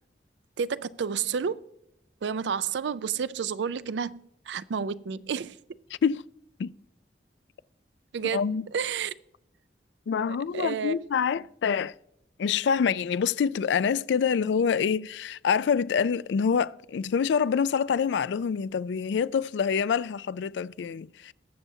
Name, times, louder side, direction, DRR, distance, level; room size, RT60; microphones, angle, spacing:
voice 1, 0.6-1.6 2.2-5.6 8.1-8.4 8.7-9.1 10.5-10.9, right 6 dB, 85° right, 0.4 m, -30 dB
voice 2, 8.3-8.6 10.1-11.9 12.4-21.3, left 6 dB, 85° left, 0.3 m, -26 dB
21.0 x 6.9 x 2.7 m
head